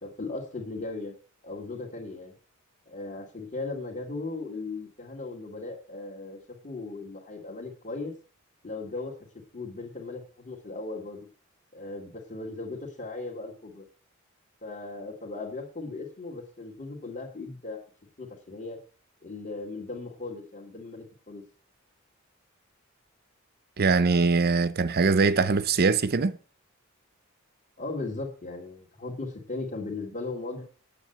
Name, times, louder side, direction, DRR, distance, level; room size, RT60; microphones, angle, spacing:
voice 1, 0.0-1.1 1.4-2.3 2.9-6.4 6.6-8.1 8.6-9.2 9.5-11.2 11.7-13.9 14.6-17.8 18.2-18.8 19.2-21.4 27.8-30.6, left 3 dB, 40° left, 2.3 m, -37 dB
voice 2, 23.8-26.3, right 4 dB, 50° right, 0.6 m, -22 dB
9.2 x 7.9 x 8.0 m
head